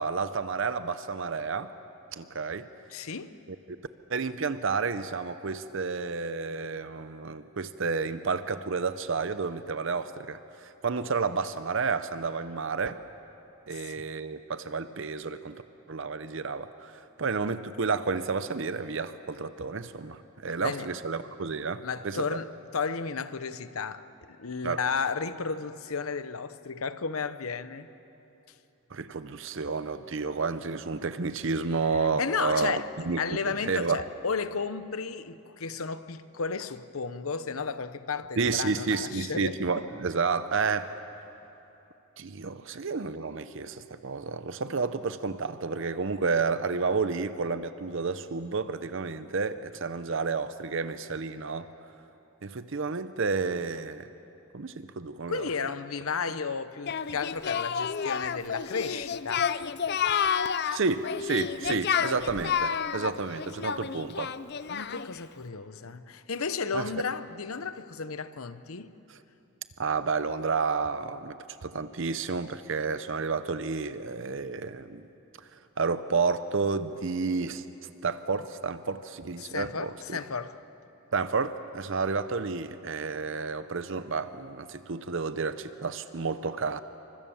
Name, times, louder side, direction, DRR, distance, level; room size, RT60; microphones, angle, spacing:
voice 1, 0.0-1.7 2.1-2.7 3.7-13.0 13.7-15.6 15.9-22.2 24.6-24.8 28.9-34.0 38.4-40.9 42.2-51.7 52.4-54.1 54.5-55.5 60.7-64.3 66.7-66.9 69.8-71.4 71.6-75.0 75.4-77.6 78.0-80.2 81.1-86.8, right 4 dB, 60° right, 0.7 m, -31 dB
voice 2, 2.9-3.4 13.7-14.0 20.4-20.9 21.8-27.9 32.2-39.6 42.7-42.8 55.3-59.5 64.7-68.9 79.4-80.6, left 5 dB, 80° left, 0.9 m, -33 dB
Singing, 56.9-65.2, left 7 dB, 50° left, 0.5 m, -30 dB
28.5 x 25.0 x 7.2 m
head